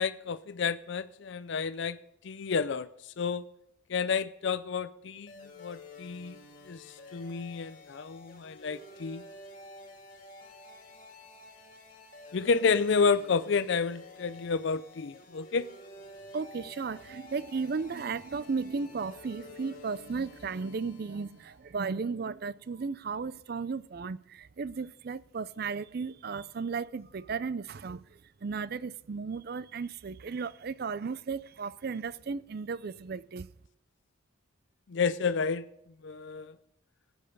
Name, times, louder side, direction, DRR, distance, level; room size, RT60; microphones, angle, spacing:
voice 1, 0.0-2.0 2.2-3.4 3.9-5.3 5.6-6.4 6.7-9.2 12.3-15.7 34.9-35.7 36.0-36.5, left 5 dB, 55° left, 0.4 m, -30 dB
sound 1, 5.3-21.7, left 2 dB, 40° left, 2.2 m, -50 dB
voice 2, 16.3-33.5, right 5 dB, 45° right, 0.4 m, -35 dB
15.0 x 8.9 x 5.3 m
head